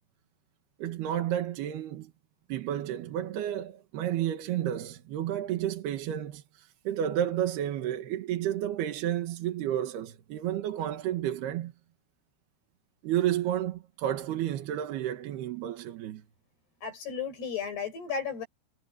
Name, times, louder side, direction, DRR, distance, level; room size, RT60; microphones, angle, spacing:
voice 1, 0.8-2.1 2.5-11.7 13.0-16.2, right 11 dB, 85° right, 3.6 m, -31 dB
voice 2, 16.8-18.5, left 6 dB, 85° left, 8.6 m, -34 dB
omnidirectional pair, 4.6 m